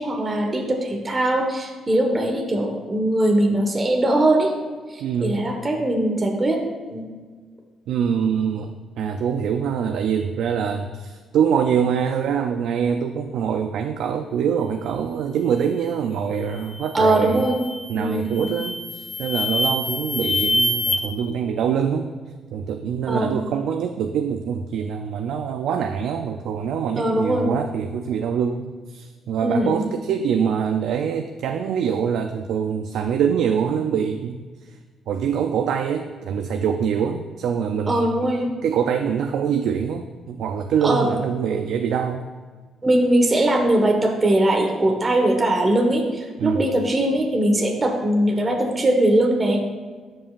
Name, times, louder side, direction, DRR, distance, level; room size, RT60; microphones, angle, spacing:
voice 1, 0.0-4.5 4.9-6.6 6.8-7.0 16.9-17.6 17.9-18.5 23.1-23.3 27.0-27.5 29.4-29.8 37.9-38.5 40.8-41.1 42.8-49.6, right 1 dB, 25° right, 1 dB, 1.3 m, -21 dB
voice 2, 5.0-5.5 7.9-17.4 17.9-22.1 22.5-34.4 35.1-38.3 38.6-42.2 46.4-46.7, right 7 dB, 80° right, 5 dB, 0.4 m, -24 dB
sound 1, 16.5-16.8 17.3-17.8 18.3-21.0, left 1 dB, 20° left, 0.7 m, -25 dB
12.5 x 5.5 x 2.5 m, 1.5 s
cardioid pair, 90°, 0 cm